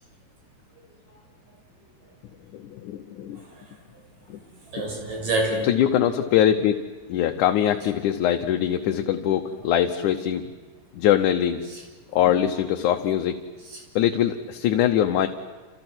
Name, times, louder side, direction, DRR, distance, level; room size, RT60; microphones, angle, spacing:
voice 1, 2.5-3.4 4.3-4.4 5.7-6.8 7.1-10.5 10.9-11.6 12.1-13.4 14.0-15.3, left 10 dB, 75° left, 5 dB, 2.3 m, -22 dB
voice 2, 3.4-3.7 4.4-5.7 11.7-11.8 13.6-13.8, right 2 dB, 85° right, 1 dB, 8.2 m, -29 dB
29.5 x 28.5 x 6.2 m, 1.4 s
omnidirectional pair, 3.8 m